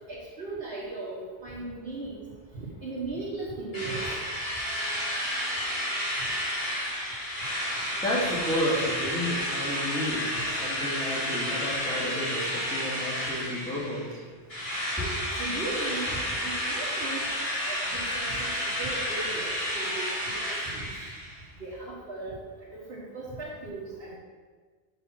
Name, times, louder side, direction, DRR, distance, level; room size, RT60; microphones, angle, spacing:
voice 1, 0.1-2.2 2.5-4.1 15.3-17.2 17.6-18.5 18.8-20.1 20.6-20.8 21.6-22.4 22.9-24.2, right 2 dB, 60° right, -7 dB, 1.7 m, -37 dB
Drill, 3.7-14.1 14.5-21.4, equal, 60° left, 2.2 m, -31 dB
voice 2, 8.0-14.2 15.0-15.1, equal, 5° left, -8 dB, 2.0 m, -31 dB
5.9 x 5.2 x 5.7 m, 1.5 s
omnidirectional pair, 1.1 m